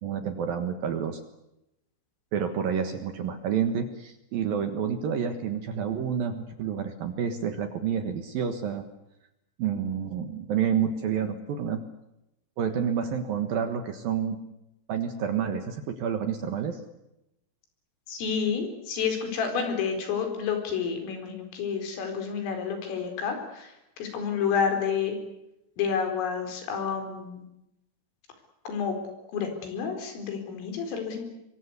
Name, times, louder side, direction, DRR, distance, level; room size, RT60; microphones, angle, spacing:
voice 1, 0.0-1.2 2.3-8.9 9.6-11.8 12.6-14.4 14.9-16.8, right 7 dB, 65° right, 8 dB, 2.6 m, -29 dB
voice 2, 18.1-25.2 25.8-27.4 28.7-29.0 29.3-31.2, left 6 dB, 85° left, 6 dB, 6.9 m, -29 dB
24.5 x 23.5 x 8.2 m, 0.88 s
omnidirectional pair, 5.7 m